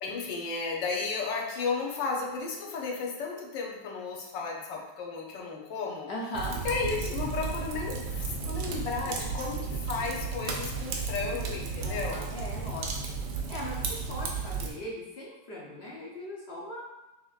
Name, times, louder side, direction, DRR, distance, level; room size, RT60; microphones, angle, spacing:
voice 1, 0.0-6.1 6.6-12.3, left 4 dB, 80° left, -1 dB, 1.4 m, -34 dB
voice 2, 6.1-6.6 9.0-9.3 11.8-12.9 13.5-16.8, left 1 dB, 65° left, -4 dB, 0.6 m, -39 dB
Fire, 6.3-14.7, right 5 dB, 80° right, 1.3 m, -34 dB
6.3 x 2.9 x 2.4 m, 0.99 s
omnidirectional pair, 2.0 m